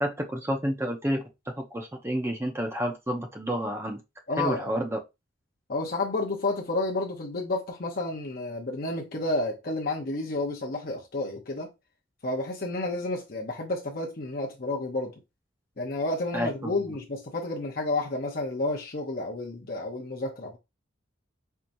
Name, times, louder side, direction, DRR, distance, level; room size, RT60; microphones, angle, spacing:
voice 1, 0.0-1.2 1.7-4.0 4.4-5.0 16.3-17.0, equal, 10° right, 0.6 m, -30 dB
voice 2, 4.3-4.8 5.7-11.7 12.2-15.1 15.8-20.6, left 2 dB, 45° left, 0.7 m, -30 dB
4.5 x 2.8 x 2.6 m
head